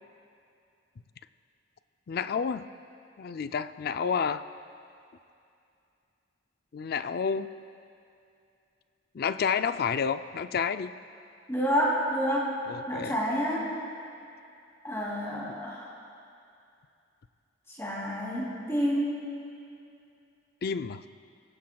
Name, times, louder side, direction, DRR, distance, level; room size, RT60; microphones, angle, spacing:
voice 1, 2.1-2.7 3.2-4.4 6.7-7.5 9.1-10.9 12.7-13.1 20.6-21.0, left 6 dB, 55° left, 11 dB, 0.4 m, -30 dB
voice 2, 11.5-12.6 12.9-13.7 14.8-15.9 17.8-19.2, equal, 15° left, -5 dB, 3.0 m, -29 dB
25.5 x 16.0 x 2.3 m, 2.6 s
head